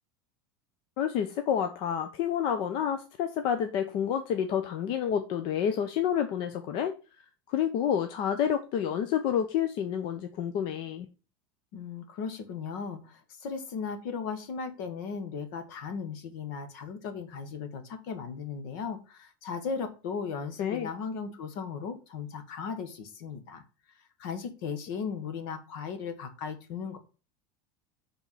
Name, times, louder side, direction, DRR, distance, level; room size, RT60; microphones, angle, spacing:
voice 1, 1.0-6.9 7.5-11.1 20.6-20.9, left 9 dB, 45° left, 0.6 m, -29 dB
voice 2, 11.7-23.6 24.2-27.0, left 5 dB, 65° left, 1.4 m, -37 dB
7.1 x 3.7 x 5.6 m
supercardioid pair, 170°, 12 cm